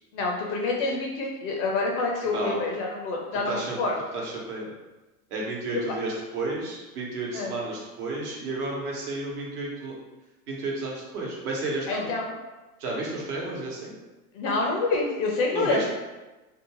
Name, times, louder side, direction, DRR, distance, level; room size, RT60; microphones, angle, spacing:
voice 1, 0.1-4.0 7.3-7.6 11.9-12.3 14.3-15.9, left 3 dB, 35° left, 0 dB, 0.4 m, -27 dB
voice 2, 2.3-2.6 3.5-3.8 4.1-4.7 5.3-9.9 10.5-12.1 12.8-13.9 15.5-15.9, right 2 dB, 70° right, -3 dB, 1.1 m, -32 dB
2.6 x 2.3 x 2.8 m, 1.1 s
hypercardioid pair, 105°, 46 cm